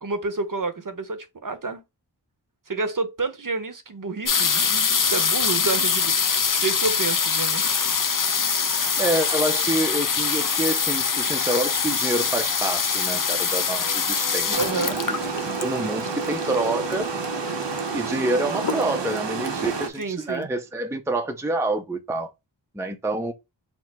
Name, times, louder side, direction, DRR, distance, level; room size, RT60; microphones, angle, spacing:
voice 1, 0.0-1.8 2.7-7.6 14.6-15.0 19.9-20.5, right 4 dB, 50° right, 0.8 m, -29 dB
sound 1, 4.3-16.8 17.6-17.7 17.9-18.3 18.6-19.2 19.7-19.8 20.0-20.1, left 5 dB, 50° left, 0.6 m, -24 dB
voice 2, 9.0-14.7 15.4-17.1 17.9-22.3 22.7-23.3, right 2 dB, 5° right, 0.5 m, -27 dB
Brass instrument, 13.8-18.1, left 1 dB, 10° left, 0.9 m, -38 dB
Water, 14.5-19.9, right 5 dB, 75° right, 0.9 m, -30 dB
4.4 x 2.0 x 4.1 m
wide cardioid pair, 65°, 43 cm